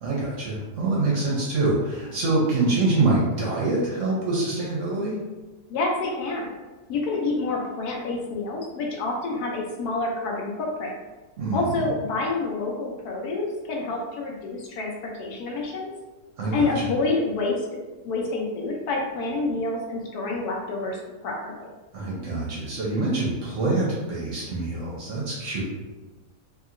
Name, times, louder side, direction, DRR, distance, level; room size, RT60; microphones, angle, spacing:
voice 1, 0.0-5.2 11.4-11.9 16.4-16.9 21.9-25.6, right 2 dB, 60° right, -5 dB, 0.9 m, -25 dB
voice 2, 5.7-6.5 6.9-10.9 11.5-14.9 15.2-15.9 16.5-17.6 18.0-21.0 21.2-21.7, left 3 dB, 75° left, -1 dB, 1.0 m, -28 dB
2.8 x 2.8 x 2.4 m, 1.2 s
omnidirectional pair, 1.8 m